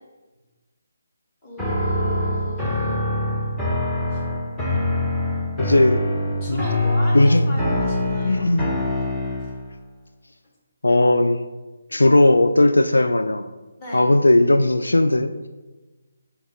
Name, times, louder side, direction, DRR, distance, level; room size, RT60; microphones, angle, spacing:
voice 1, 1.4-3.1 4.1-4.2 6.4-8.4 9.4-9.5 13.8-14.0, equal, 25° left, -4 dB, 1.8 m, -36 dB
sound 1, 1.6-9.7, left 1 dB, 10° left, 0.8 m, -24 dB
voice 2, 5.6-6.0 6.5-6.6 7.1-7.6 8.2-8.7 10.8-11.4 11.9-13.5 13.9-15.5, left 2 dB, 90° left, 9 dB, 0.3 m, -17 dB
6.3 x 2.9 x 5.2 m, 1.2 s
figure-of-eight pair, 155°, 0 cm